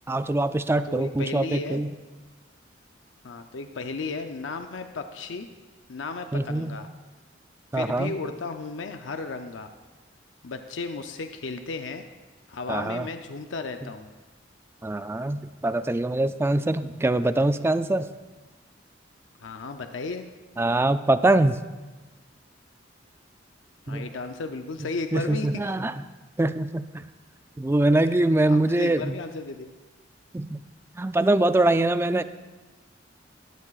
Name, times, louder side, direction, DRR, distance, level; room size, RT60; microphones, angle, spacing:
voice 1, 0.1-1.9 6.3-6.8 7.7-8.2 12.7-13.1 14.8-18.1 20.6-21.6 23.9-24.1 25.1-25.9 26.4-27.0 27.6-29.1 30.3-30.6 31.0-32.2, right 2 dB, 15° right, 12 dB, 0.3 m, -23 dB
voice 2, 0.8-1.8 3.2-5.5 5.9-6.9 7.7-9.7 10.4-12.0 12.5-14.1 19.4-20.3 23.9-25.5 28.0-29.7, left 3 dB, 90° left, 7 dB, 0.6 m, -34 dB
17.5 x 12.5 x 2.4 m, 1.2 s
head